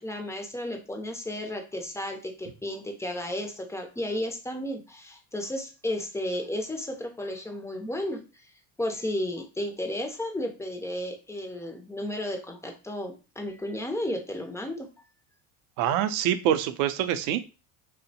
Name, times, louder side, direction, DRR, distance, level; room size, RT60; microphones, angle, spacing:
voice 1, 0.0-8.2 8.8-14.9, left 1 dB, 5° left, 4 dB, 0.4 m, -33 dB
voice 2, 15.8-17.5, right 10 dB, 65° right, 11 dB, 0.5 m, -25 dB
2.6 x 2.1 x 2.7 m, 0.31 s
hypercardioid pair, 85°, 43 cm